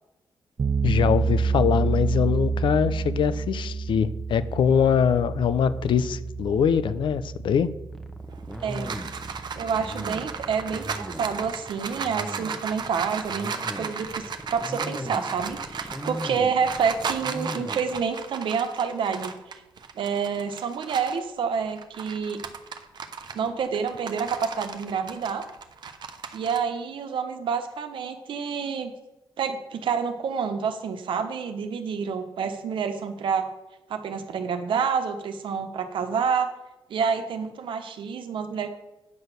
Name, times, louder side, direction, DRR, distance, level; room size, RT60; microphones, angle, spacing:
sound 1, 0.6-11.5, right 5 dB, 35° right, 0.5 m, -29 dB
voice 1, 0.8-7.7, left 7 dB, 75° left, 14 dB, 0.7 m, -23 dB
sound 2, 7.9-18.0, equal, ahead, 1.0 m, -38 dB
sound 3, 8.3-21.2 21.7-26.6, right 6 dB, 60° right, 0.9 m, -36 dB
voice 2, 8.6-8.9 9.5-19.6 19.9-22.4 23.3-25.4 26.3-28.9 29.4-33.5 33.9-36.5 36.9-38.7, right 6 dB, 80° right, 7 dB, 1.2 m, -28 dB
9.6 x 6.2 x 6.8 m, 1.0 s
wide cardioid pair, 120°, 8 cm